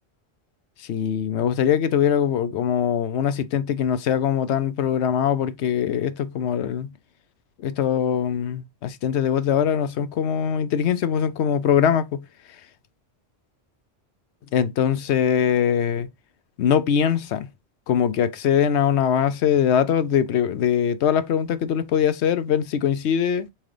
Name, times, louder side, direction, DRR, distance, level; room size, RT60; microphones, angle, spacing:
voice 1, 0.8-6.9 7.6-12.2 14.5-16.1 16.6-17.5 17.9-23.5, left 8 dB, 90° left, 0.9 m, -22 dB
4.3 x 3.7 x 3.2 m
omnidirectional pair, 1.1 m